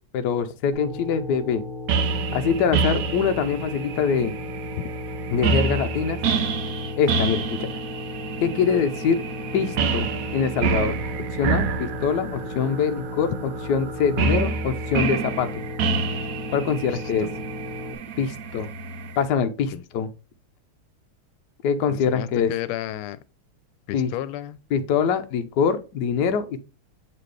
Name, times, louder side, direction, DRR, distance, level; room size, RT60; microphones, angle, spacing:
voice 1, 0.1-1.6 2.3-4.3 5.3-6.2 7.0-7.8 8.4-9.2 9.5-10.9 11.4-13.3 13.7-15.6 16.5-17.3 18.2-18.7 19.2-20.1 21.6-22.5 23.9-24.1 24.7-26.6, left 6 dB, 65° left, 1.1 m, -24 dB
sound 1, 0.7-17.9, left 2 dB, 35° left, 1.1 m, -36 dB
sound 2, 1.9-19.2, right 5 dB, 75° right, 0.7 m, -28 dB
voice 2, 16.9-17.3 18.2-18.3 19.7-19.8 21.9-23.2 23.9-24.6, left 13 dB, 90° left, 1.4 m, -32 dB
7.4 x 4.3 x 3.2 m
omnidirectional pair, 2.3 m